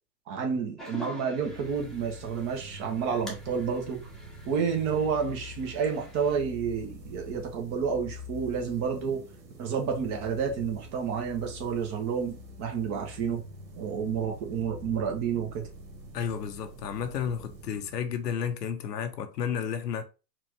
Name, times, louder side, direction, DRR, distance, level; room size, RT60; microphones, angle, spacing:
voice 1, 0.3-4.1 4.5-9.2 9.6-13.4 13.8-15.6, right 6 dB, 35° right, 1.0 m, -30 dB
sound 1, 0.8-6.3, left 1 dB, ahead, 0.9 m, -46 dB
sound 2, 1.4-18.9, left 1 dB, 85° right, 1.4 m, -46 dB
voice 2, 16.1-20.1, left 7 dB, 75° left, 0.8 m, -32 dB
4.4 x 2.5 x 3.0 m
hypercardioid pair, 110°, 50 cm